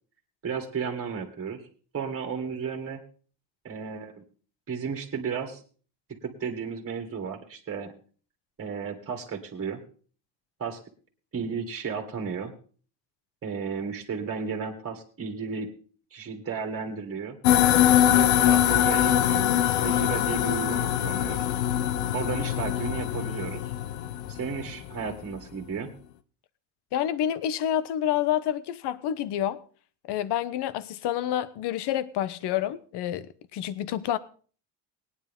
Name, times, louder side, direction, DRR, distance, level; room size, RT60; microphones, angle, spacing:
voice 1, 0.4-1.6 1.9-3.0 3.6-4.2 4.7-5.6 6.2-7.9 8.6-9.8 10.6-10.8 11.3-12.5 13.4-15.7 16.1-17.4 18.0-21.4 22.1-23.7 24.3-25.9, right 6 dB, 30° right, 2.1 m, -33 dB
sound 1, 17.4-25.1, left 11 dB, 85° left, 1.0 m, -23 dB
voice 2, 26.9-29.6 30.0-34.2, left 11 dB, 60° left, 1.0 m, -28 dB
18.0 x 9.7 x 3.7 m
supercardioid pair, 100°, 45 cm